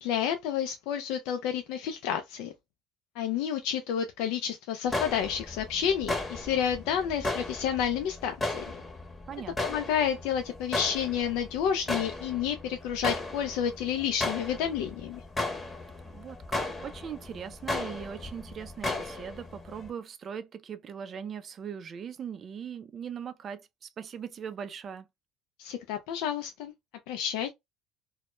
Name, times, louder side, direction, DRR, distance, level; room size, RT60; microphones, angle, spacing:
voice 1, 0.0-2.5 3.2-8.6 9.6-15.2 25.6-26.7 27.1-27.5, left 8 dB, 80° left, 0.3 m, -30 dB
sound 1, 4.9-19.9, left 2 dB, 20° left, 0.8 m, -36 dB
voice 2, 9.3-9.8 16.1-25.1, right 7 dB, 40° right, 0.4 m, -40 dB
2.1 x 2.1 x 2.9 m
supercardioid pair, 90°, 0 cm